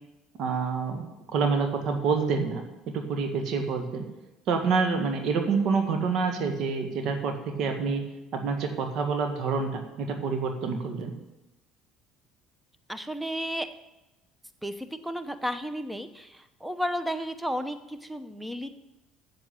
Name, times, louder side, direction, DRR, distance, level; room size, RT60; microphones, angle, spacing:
voice 1, 0.4-1.1 1.3-2.6 2.9-4.0 4.5-8.0 8.3-11.1, right 5 dB, 60° right, 4 dB, 1.8 m, -27 dB
voice 2, 12.9-13.7 14.6-18.7, equal, 5° right, 11 dB, 0.9 m, -33 dB
7.7 x 7.4 x 8.4 m, 0.99 s
hypercardioid pair, 75°, 0 cm